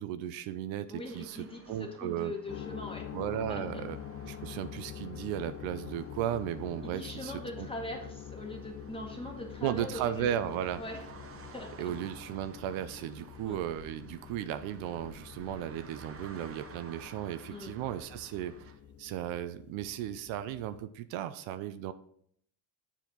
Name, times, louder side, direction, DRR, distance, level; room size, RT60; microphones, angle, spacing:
voice 1, 0.0-2.3 3.1-4.0 4.2-7.7 9.6-10.8 11.8-18.5 19.0-21.9, right 11 dB, 75° right, 12 dB, 0.6 m, -35 dB
voice 2, 0.9-3.0 3.5-3.8 4.3-4.4 6.8-11.0 11.5-11.9 13.4-13.6 17.5-17.7, left 1 dB, 10° left, 1 dB, 1.7 m, -42 dB
sound 1, 1.0-18.8, right 5 dB, 30° right, 0.9 m, -54 dB
sound 2, 2.5-20.8, left 9 dB, 30° left, 0.5 m, -46 dB
7.2 x 4.3 x 3.8 m, 0.65 s
supercardioid pair, 75°, 47 cm